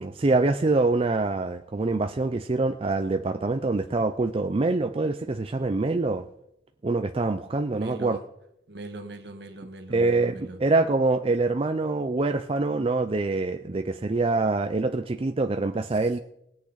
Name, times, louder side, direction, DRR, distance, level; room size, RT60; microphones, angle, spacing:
voice 1, 0.0-6.3 6.8-8.2 9.9-16.2, right 3 dB, 30° right, 0.5 m, -25 dB
voice 2, 7.7-8.2 8.7-10.6 16.0-16.2, right 1 dB, 65° right, 1.6 m, -41 dB
20.0 x 8.4 x 4.0 m
head